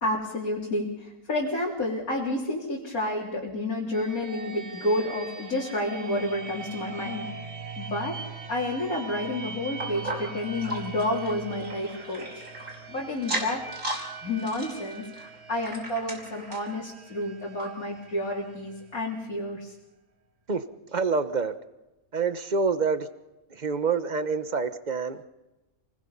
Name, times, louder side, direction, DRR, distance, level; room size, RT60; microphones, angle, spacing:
voice 1, 0.0-7.3 7.8-8.2 8.5-12.5 12.9-13.6 13.9-19.7, left 1 dB, 85° left, -4 dB, 3.8 m, -30 dB
sound 1, 3.9-19.6, right 5 dB, 50° right, 1.8 m, -42 dB
sound 2, 9.8-12.8 13.2-14.1 14.4-16.7 17.2-17.3 17.6-17.7 18.3-18.4, right 1 dB, 65° right, 5.8 m, -36 dB
voice 2, 20.9-21.5 22.1-23.1 23.5-25.3, right 5 dB, 35° right, 11 dB, 1.3 m, -27 dB
29.5 x 20.0 x 5.7 m, 1.0 s
omnidirectional pair, 1.5 m